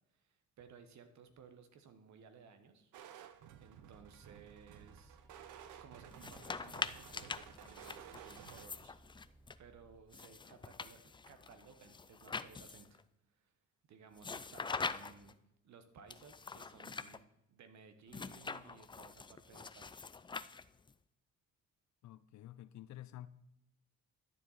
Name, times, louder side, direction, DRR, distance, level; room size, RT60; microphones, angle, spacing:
voice 1, 0.1-2.9 3.6-5.2 5.6-9.0 9.6-13.0 13.3-13.5 13.9-15.4 15.6-17.2 17.5-20.0, right 6 dB, 65° right, 1.3 m, -59 dB
sound 1, 2.9-8.7, right 10 dB, 80° right, 0.8 m, -55 dB
Bus, 3.8-10.0, right 2 dB, 15° right, 0.8 m, -64 dB
sound 2, 6.1-9.5 10.1-13.0 14.2-15.3 16.1-17.2 18.1-20.9, left 4 dB, 15° left, 0.4 m, -44 dB
voice 2, 22.0-23.3, left 13 dB, 70° left, 0.6 m, -50 dB
11.5 x 7.3 x 4.1 m
cardioid pair, 90°, 30 cm